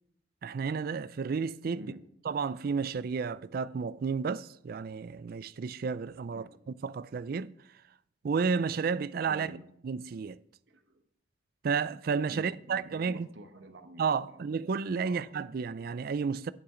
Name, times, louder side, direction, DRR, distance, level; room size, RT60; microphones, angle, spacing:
voice 1, 0.4-1.9 2.2-6.4 6.8-7.5 8.2-9.5 9.8-10.4 11.6-13.3 14.0-16.5, right 5 dB, 55° right, 0.4 m, -32 dB
voice 2, 9.3-9.6 10.7-11.0 12.3-14.5 15.0-15.3, right 1 dB, 70° right, 1.2 m, -48 dB
9.9 x 8.6 x 3.8 m
head